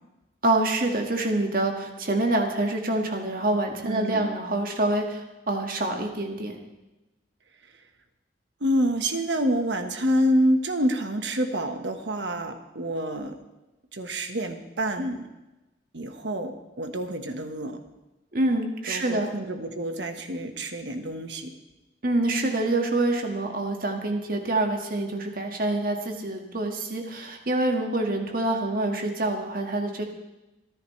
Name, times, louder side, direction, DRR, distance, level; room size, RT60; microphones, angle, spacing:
voice 1, 0.4-6.6 18.3-19.3 22.0-30.1, right 2 dB, 50° right, 3 dB, 1.9 m, -26 dB
voice 2, 3.8-4.3 8.6-13.4 13.9-15.3 15.9-17.8 18.9-21.5, equal, 80° right, 6 dB, 1.4 m, -27 dB
27.0 x 10.5 x 3.3 m, 1.0 s
head